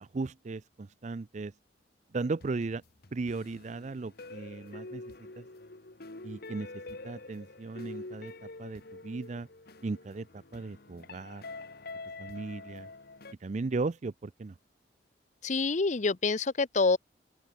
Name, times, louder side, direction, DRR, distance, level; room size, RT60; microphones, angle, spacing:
voice 1, 0.0-1.5 2.1-2.8 3.1-5.0 5.4-5.5 6.2-8.3 8.6-9.5 9.8-11.4 12.2-12.9 13.4-14.5, right 3 dB, 40° right, 0.4 m, -36 dB
sound 1, 2.4-13.3, left 2 dB, 55° left, 1.5 m, -46 dB
voice 2, 15.4-17.0, left 3 dB, 40° left, 0.7 m, -26 dB
open air
head